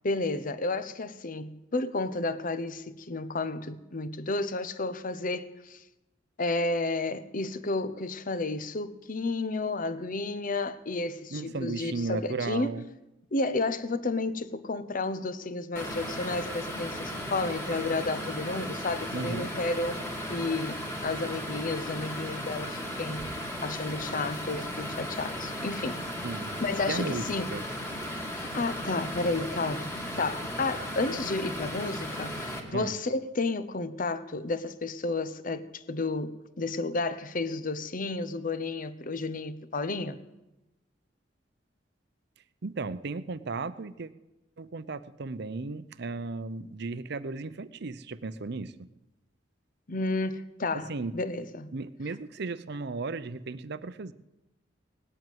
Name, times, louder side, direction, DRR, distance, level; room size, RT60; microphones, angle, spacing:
voice 1, 0.0-5.8 6.4-12.7 13.3-20.0 20.3-23.2 23.6-26.0 26.6-27.5 28.3-40.2 49.9-51.7, left 3 dB, 45° left, 0.9 m, -32 dB
voice 2, 11.3-12.9 19.1-19.5 26.2-26.6 26.9-27.6 32.7-33.0 42.6-44.1 44.6-48.9 50.9-51.2 51.7-54.1, right 3 dB, 60° right, 0.7 m, -35 dB
sound 1, 15.8-32.6, equal, 15° left, 2.3 m, -36 dB
18.5 x 7.8 x 9.3 m
head